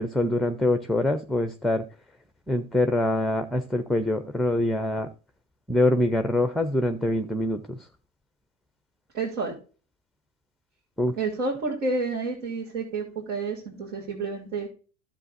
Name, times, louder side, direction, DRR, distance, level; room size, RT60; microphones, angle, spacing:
voice 1, 0.0-1.8 2.5-5.1 5.7-7.9 11.0-11.1, left 1 dB, ahead, 10 dB, 0.5 m, -24 dB
voice 2, 9.1-9.6 11.1-14.7, right 3 dB, 75° right, -4 dB, 3.3 m, -30 dB
12.0 x 7.4 x 2.6 m, 0.35 s
hypercardioid pair, 90°, 36 cm